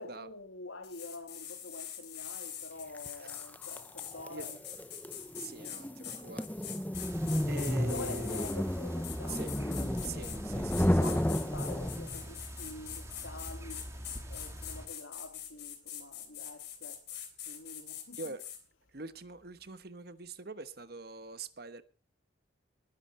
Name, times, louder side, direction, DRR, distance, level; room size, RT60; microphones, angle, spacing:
voice 1, 0.0-4.6 7.5-13.9 14.3-17.2 17.5-18.4, left 2 dB, 80° left, 1.8 m, -47 dB
sound 1, 0.8-8.6 9.0-10.4 10.7-18.6, left 10 dB, 55° left, 3.6 m, -44 dB
sound 2, 2.9-12.3, equal, 10° left, 0.7 m, -33 dB
voice 2, 5.4-6.7 7.5-8.3 9.3-9.6 10.0-11.2 18.1-18.5 18.9-21.8, right 4 dB, 50° right, 1.2 m, -44 dB
sound 3, 6.9-14.9, equal, 15° right, 2.5 m, -45 dB
20.5 x 10.5 x 4.2 m
head